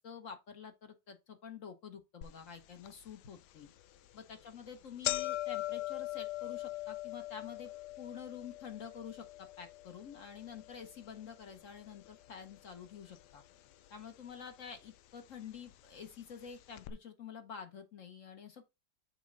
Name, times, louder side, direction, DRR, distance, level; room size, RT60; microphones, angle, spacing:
voice 1, 0.0-3.7 4.1-7.7 8.0-13.4 13.9-18.7, left 7 dB, 55° left, 1.2 m, -48 dB
sound 1, 2.2-2.3 2.9-3.0 3.8-4.0 4.3-4.4 4.7-12.9 13.1-13.9 14.7-14.8 15.7-15.8 16.1-16.2 16.8-16.9, left 15 dB, 80° left, 1.1 m, -41 dB
6.4 x 4.4 x 3.8 m
omnidirectional pair, 1.8 m